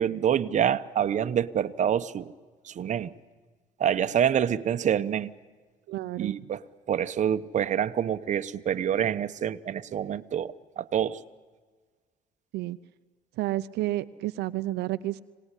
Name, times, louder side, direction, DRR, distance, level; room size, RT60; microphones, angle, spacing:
voice 1, 0.0-2.3 2.6-3.2 3.8-5.3 6.2-11.2, right 9 dB, 45° right, 10 dB, 1.0 m, -27 dB
voice 2, 5.9-6.4 12.5-12.8 13.4-15.2, right 16 dB, 80° right, 10 dB, 0.7 m, -30 dB
26.0 x 18.5 x 10.0 m, 1.5 s
cardioid pair, 110°, 17 cm